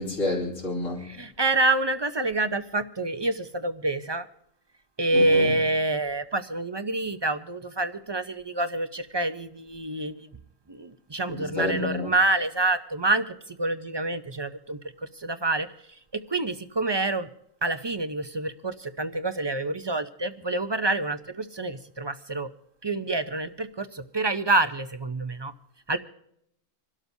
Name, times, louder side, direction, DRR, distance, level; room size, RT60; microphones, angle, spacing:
voice 1, 0.0-1.1 5.1-5.5 11.3-12.1, left 2 dB, 80° left, -4 dB, 3.5 m, -29 dB
voice 2, 1.0-4.3 5.0-10.3 10.7-14.8 15.2-15.7 16.3-17.3 17.6-22.5 22.8-25.5 25.9-26.0, right 2 dB, 35° right, 10 dB, 0.4 m, -27 dB
27.0 x 12.5 x 2.7 m, 0.74 s
omnidirectional pair, 1.3 m